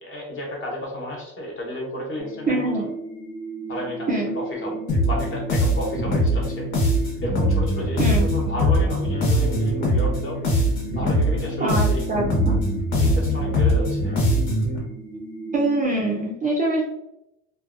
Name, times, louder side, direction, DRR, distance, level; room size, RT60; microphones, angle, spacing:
voice 1, 0.0-2.7 3.7-4.1 4.3-6.7 7.2-10.4 10.9-12.0 13.0-14.1, left 1 dB, 35° left, -1 dB, 0.9 m, -32 dB
sound 1, 2.2-15.8, right 3 dB, 10° left, 1.1 m, -34 dB
voice 2, 2.5-2.9 4.1-4.3 8.0-8.3 11.6-12.6 15.5-16.8, right 2 dB, 25° right, -3 dB, 0.4 m, -24 dB
sound 2, 4.9-14.8, equal, 70° left, 1.1 m, -22 dB
2.7 x 2.2 x 2.4 m, 0.83 s
cardioid pair, 140°, 36 cm